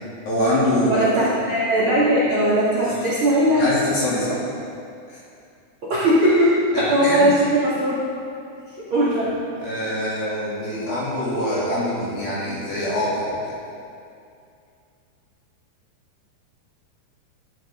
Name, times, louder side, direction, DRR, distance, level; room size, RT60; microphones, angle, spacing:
voice 1, 0.3-1.0 3.6-4.4 5.1-5.2 7.0-7.3 9.6-13.5, left 1 dB, 55° left, -8 dB, 4.1 m, -24 dB
voice 2, 0.9-3.7 5.8-8.0 8.8-9.4, right 1 dB, 70° right, -9 dB, 1.2 m, -19 dB
13.5 x 9.8 x 3.7 m, 2.5 s
omnidirectional pair, 5.4 m